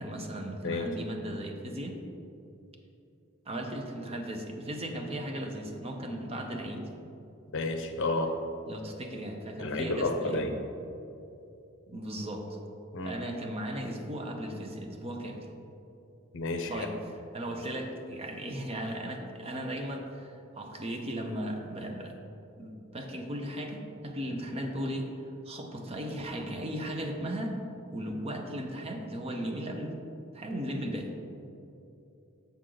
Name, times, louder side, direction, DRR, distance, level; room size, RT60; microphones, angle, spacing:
voice 1, 0.0-2.0 3.5-6.9 8.7-10.5 11.9-12.6 13.0-15.5 16.7-16.9 17.3-22.1 22.6-25.1 25.4-27.6 27.9-29.9 30.3-31.1, right 1 dB, 30° right, 3 dB, 0.7 m, -36 dB
voice 2, 7.5-8.3 9.6-10.6 12.9-13.2 16.3-16.9, left 2 dB, 65° left, 5 dB, 0.6 m, -31 dB
7.0 x 6.3 x 3.8 m, 2.7 s
head